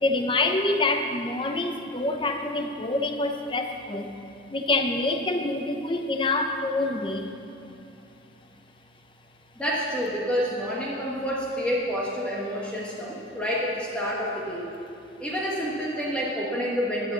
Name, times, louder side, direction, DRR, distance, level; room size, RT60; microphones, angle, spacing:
voice 1, 0.0-4.1 4.5-7.3, left 2 dB, 25° left, 5 dB, 0.8 m, -26 dB
voice 2, 9.5-14.7 15.2-17.1, equal, 5° left, -5 dB, 1.4 m, -28 dB
11.5 x 8.6 x 6.8 m, 2.6 s
head